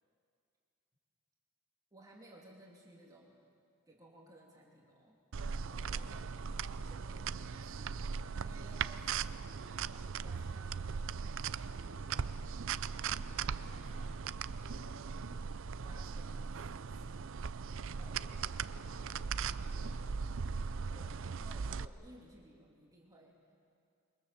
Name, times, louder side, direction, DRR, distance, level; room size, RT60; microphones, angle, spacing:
voice 1, 1.9-3.4 3.9-5.2 5.9-10.9 11.6-12.3 15.8-17.3 18.0-18.2 20.9-23.5, right 1 dB, 15° right, -3 dB, 2.8 m, -59 dB
sound 1, 5.3-21.8, right 6 dB, 60° right, 0.5 m, -39 dB
voice 2, 5.6-6.1 13.4-14.2 14.5-15.6 18.1-19.3 19.7-20.1, left 1 dB, 30° left, -3 dB, 4.4 m, -61 dB
28.0 x 23.0 x 7.4 m, 2.4 s
head